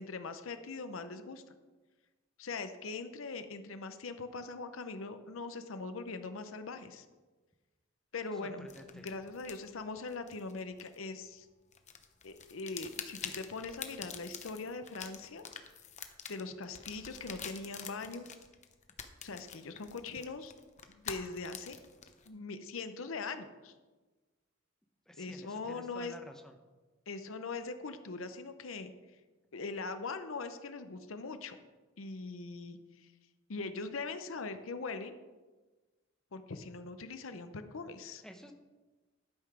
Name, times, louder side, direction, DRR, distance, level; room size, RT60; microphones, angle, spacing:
voice 1, 0.0-1.4 2.4-7.1 8.1-8.7 8.9-11.5 12.2-15.4 16.3-18.3 19.2-20.5 20.9-21.8 22.3-23.7 25.2-26.1 27.1-28.9 29.5-31.6 32.0-33.1 33.5-35.2 36.3-38.2, left 3 dB, 85° left, 9 dB, 0.7 m, -41 dB
voice 2, 8.4-9.1 25.1-26.6 38.2-38.5, equal, 5° left, 4 dB, 0.7 m, -51 dB
sound 1, 8.7-11.4 11.7-22.3, left 7 dB, 35° left, 0.7 m, -47 dB
11.5 x 5.8 x 4.9 m, 1.2 s
head